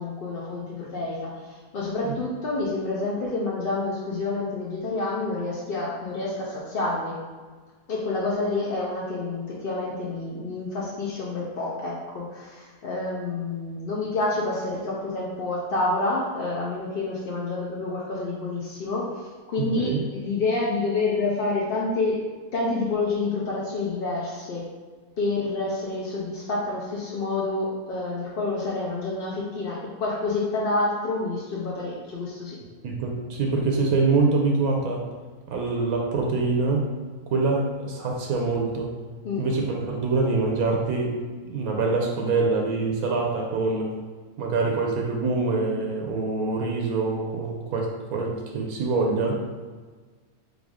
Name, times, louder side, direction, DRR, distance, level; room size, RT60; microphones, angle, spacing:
voice 1, 0.0-7.2 7.9-19.1 19.5-22.2 22.5-24.7 25.2-32.6 39.2-39.4, left 3 dB, 60° left, -4 dB, 0.6 m, -28 dB
voice 2, 19.6-20.0 32.8-35.1 35.5-36.9 37.3-38.9 39.4-41.2 41.5-43.9 44.4-49.3, right 3 dB, 85° right, 0 dB, 1.1 m, -25 dB
3.7 x 3.5 x 3.6 m, 1.4 s
omnidirectional pair, 1.6 m